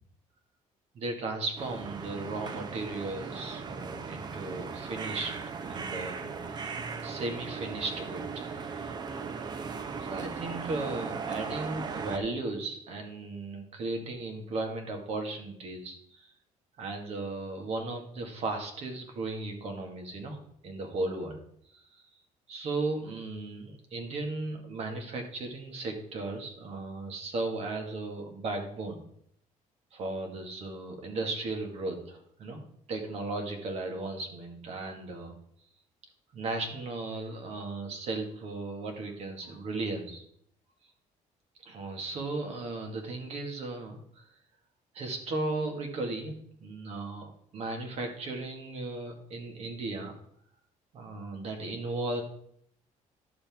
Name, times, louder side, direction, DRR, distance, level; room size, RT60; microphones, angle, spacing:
voice 1, 1.0-5.3 5.6-6.2 7.0-8.8 10.1-16.3 16.8-21.4 21.7-21.8 22.5-29.0 29.9-32.6 32.9-35.3 36.3-40.2 41.6-44.2 44.9-46.3 46.6-50.1 50.9-52.2, right 2 dB, 50° right, 4 dB, 1.8 m, -36 dB
sound 1, 1.6-12.2, right 5 dB, 35° right, 0.7 m, -38 dB
11.5 x 6.8 x 3.5 m, 0.68 s
cardioid pair, 160°, 13 cm